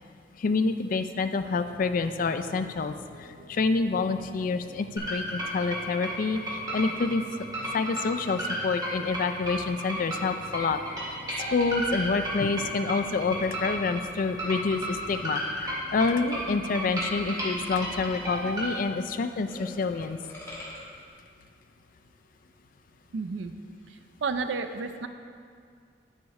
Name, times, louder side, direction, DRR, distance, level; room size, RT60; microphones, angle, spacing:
voice 1, 0.4-7.2 7.7-11.2 11.5-20.2, left 4 dB, 50° left, 9 dB, 0.4 m, -28 dB
sound 1, 1.4-18.7, equal, 50° right, 0.9 m, -49 dB
sound 2, 5.0-18.7, right 1 dB, 20° right, 1.8 m, -33 dB
sound 3, 15.9-16.1 16.4-16.5 16.8-21.0, left 1 dB, 15° left, 1.8 m, -47 dB
voice 2, 23.1-23.5 24.2-25.1, right 4 dB, 80° right, 8 dB, 0.5 m, -31 dB
9.8 x 4.8 x 4.1 m, 2.2 s
head